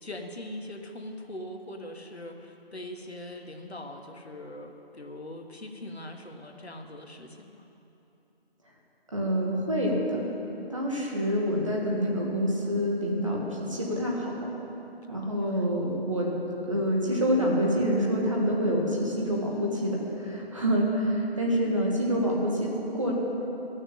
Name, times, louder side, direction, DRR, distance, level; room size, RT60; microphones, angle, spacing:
voice 1, 0.0-7.7 15.4-15.5, left 1 dB, 90° left, 3 dB, 1.5 m, -41 dB
voice 2, 9.1-10.2 10.7-14.3 15.1-16.3 16.7-23.1, equal, 30° right, -2 dB, 1.7 m, -27 dB
12.0 x 6.5 x 9.1 m, 3.0 s
figure-of-eight pair, 175°, 31 cm